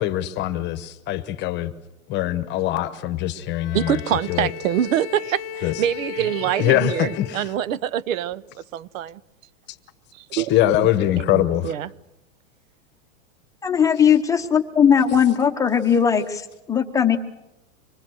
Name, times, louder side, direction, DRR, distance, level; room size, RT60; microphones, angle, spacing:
voice 1, 0.0-1.7 2.1-4.0 4.3-4.5 5.6-5.7 6.6-7.4 10.3-11.7, left 14 dB, 25° left, 1.1 m, -22 dB
Bowed string instrument, 3.5-8.0, left 8 dB, 45° left, 0.9 m, -36 dB
voice 2, 3.7-8.4 8.7-9.2 10.1-10.5 10.8-10.9 11.2-11.9, right 11 dB, 80° right, 0.8 m, -25 dB
voice 3, 13.6-17.2, left 7 dB, 10° left, 0.9 m, -18 dB
25.5 x 21.0 x 6.4 m
supercardioid pair, 160°, 39 cm